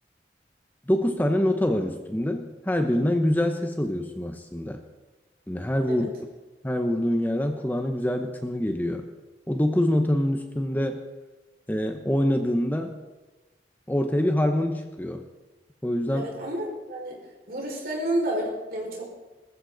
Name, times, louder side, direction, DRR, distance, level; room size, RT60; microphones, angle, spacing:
voice 1, 0.9-4.8 5.5-6.1 6.6-9.1 9.5-11.0 11.7-12.9 13.9-15.3 15.8-16.3, left 1 dB, 10° left, 5 dB, 0.8 m, -25 dB
voice 2, 16.1-17.2 17.5-19.1, right 1 dB, 55° right, -2 dB, 5.3 m, -30 dB
20.5 x 14.0 x 4.0 m, 1.2 s
head